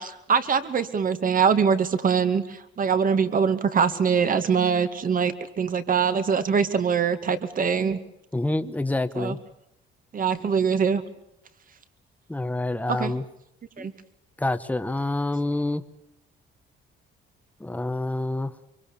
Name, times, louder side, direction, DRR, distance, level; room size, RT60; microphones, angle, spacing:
voice 1, 0.0-8.0 9.1-9.4 10.1-11.0 12.9-13.1 13.8-13.9, right 6 dB, 40° right, 10 dB, 2.3 m, -23 dB
voice 2, 8.3-9.4 12.3-13.2 13.8-13.9 14.4-15.8 17.6-18.5, left 2 dB, 5° left, 10 dB, 1.3 m, -27 dB
24.5 x 24.0 x 7.1 m, 0.83 s
cardioid pair, 110°, 21 cm